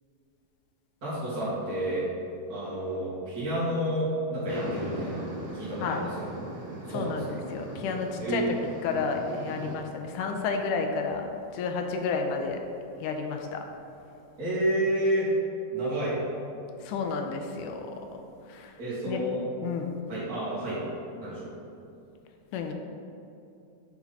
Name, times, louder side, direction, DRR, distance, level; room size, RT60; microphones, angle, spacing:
voice 1, 1.0-2.1 2.5-5.3 5.5-6.4 6.9-7.4 8.2-8.7 14.4-15.3 15.7-16.2 18.8-19.4 20.1-20.8 21.2-21.5, right 1 dB, 35° right, -10 dB, 1.7 m, -30 dB
sound 1, 4.5-9.8, right 1 dB, 60° right, 1.0 m, -39 dB
voice 2, 6.9-8.5 8.8-11.3 11.5-12.6 13.0-13.6 16.8-17.9 18.1-18.2 18.5-18.7 19.1-19.2 19.6-20.0 22.5-22.7, left 5 dB, 80° left, 4 dB, 2.1 m, -31 dB
7.1 x 4.6 x 5.4 m, 2.7 s
omnidirectional pair, 3.8 m